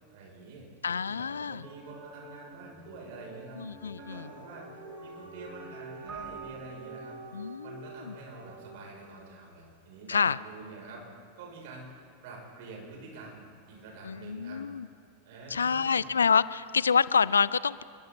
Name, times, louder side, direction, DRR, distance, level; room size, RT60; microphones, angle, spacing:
voice 1, 0.1-3.6 4.0-7.2 7.4-11.0 11.4-14.6 15.2-16.2, right 3 dB, 50° right, -2 dB, 7.4 m, -47 dB
voice 2, 0.8-1.7 3.6-4.3 7.3-8.1 10.1-10.4 14.0-14.9 15.5-17.8, left 6 dB, 70° left, 20 dB, 0.4 m, -27 dB
sound 1, 1.6-7.2, right 1 dB, ahead, 2.9 m, -51 dB
Dog, 4.0-9.2, right 2 dB, 80° right, 3.5 m, -48 dB
Keyboard (musical), 6.1-7.9, right 7 dB, 20° right, 2.1 m, -47 dB
27.0 x 23.0 x 4.2 m, 2.2 s
figure-of-eight pair, 90°, 0 cm